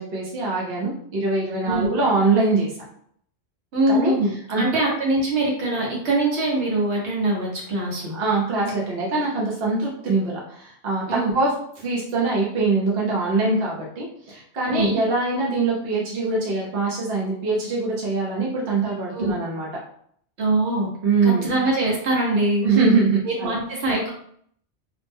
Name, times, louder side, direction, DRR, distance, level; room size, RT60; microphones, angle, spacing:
voice 1, 0.0-2.7 3.9-4.1 4.5-4.6 8.1-11.0 11.3-11.5 11.8-19.7 21.0-21.5 22.6-23.5, right 3 dB, 60° right, -4 dB, 1.0 m, -23 dB
voice 2, 1.7-2.0 3.7-8.2 11.1-11.3 14.7-15.0 19.1-19.4 20.4-20.9 21.2-22.6 23.2-24.1, right 2 dB, 80° right, -3 dB, 1.3 m, -23 dB
3.0 x 2.1 x 3.4 m, 0.64 s
omnidirectional pair, 1.1 m